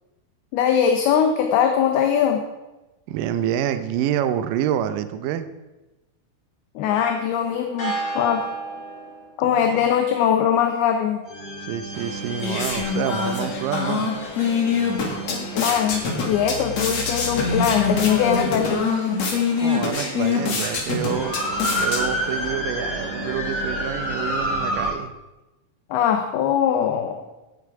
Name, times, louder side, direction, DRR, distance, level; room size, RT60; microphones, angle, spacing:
voice 1, 0.5-2.4 6.8-8.5 9.4-11.2 15.3-18.9 25.9-27.2, left 8 dB, 75° left, 5 dB, 2.7 m, -21 dB
voice 2, 3.1-5.5 9.4-9.9 11.6-14.1 19.5-21.4 21.8-25.1, right 10 dB, 85° right, 10 dB, 1.9 m, -27 dB
sound 1, 7.4-9.3 11.3-18.6 19.8-19.9 21.0-24.9, right 1 dB, 25° left, 5.1 m, -30 dB
sound 2, 11.9-22.5, left 5 dB, 45° left, 2.6 m, -25 dB
17.0 x 8.3 x 4.8 m, 1.0 s
omnidirectional pair, 4.9 m